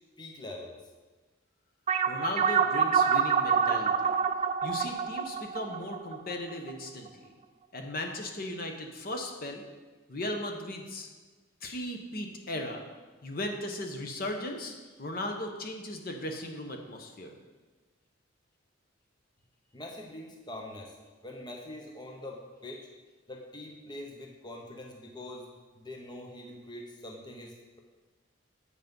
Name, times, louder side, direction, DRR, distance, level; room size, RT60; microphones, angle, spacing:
voice 1, 0.2-0.8 19.7-21.0 21.2-22.9 23.3-27.8, left 1 dB, 20° left, 1 dB, 0.8 m, -44 dB
sound 1, 1.9-6.7, right 6 dB, 35° right, 0.3 m, -27 dB
voice 2, 2.1-4.1 4.6-7.1 7.7-9.6 10.1-11.1 11.6-12.8 13.2-17.3, left 1 dB, 45° left, 3 dB, 0.8 m, -37 dB
8.2 x 5.8 x 5.3 m, 1.3 s
head